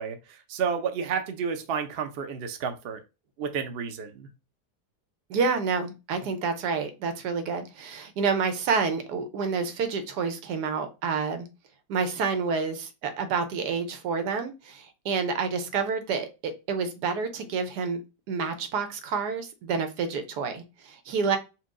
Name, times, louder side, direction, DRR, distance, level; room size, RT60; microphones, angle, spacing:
voice 1, 0.0-3.0 3.4-4.3, right 6 dB, 60° right, 0.6 m, -31 dB
voice 2, 5.3-11.5 11.9-18.0 18.3-21.4, right 5 dB, 80° right, 1.3 m, -28 dB
4.5 x 2.2 x 3.6 m
omnidirectional pair, 1.8 m